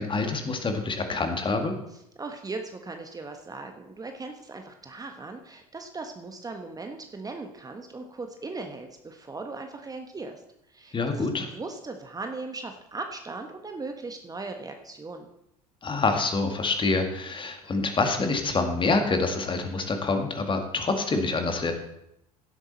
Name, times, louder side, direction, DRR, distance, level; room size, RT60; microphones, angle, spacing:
voice 1, 0.0-1.7 10.9-11.5 15.8-21.7, left 3 dB, 25° left, 5 dB, 2.0 m, -26 dB
voice 2, 2.2-10.4 10.7-15.3, right 3 dB, 20° right, 5 dB, 1.3 m, -38 dB
16.5 x 8.1 x 4.2 m, 0.82 s
figure-of-eight pair, 65°, 20 cm